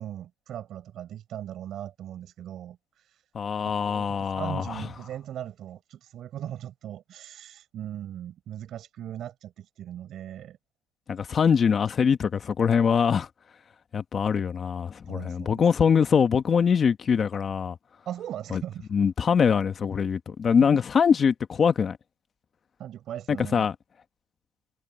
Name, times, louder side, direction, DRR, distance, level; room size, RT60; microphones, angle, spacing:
voice 1, 0.0-3.2 3.6-10.6 15.0-15.7 18.0-18.9 20.6-20.7 22.8-23.7, right 11 dB, 45° right, 5.3 m, -39 dB
voice 2, 3.3-4.8 11.1-13.3 13.9-17.8 18.5-18.6 18.9-22.0 23.3-23.7, left 6 dB, 30° left, 1.2 m, -23 dB
cardioid pair, 140°, 0 cm